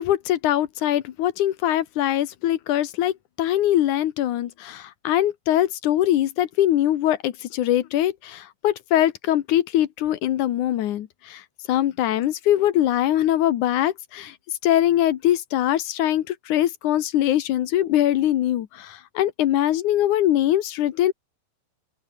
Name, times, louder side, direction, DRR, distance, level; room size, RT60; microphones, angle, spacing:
voice 1, 0.0-11.4 11.7-14.3 14.6-21.1, left 12 dB, 65° left, 2.5 m, -22 dB
open air
omnidirectional pair, 4.0 m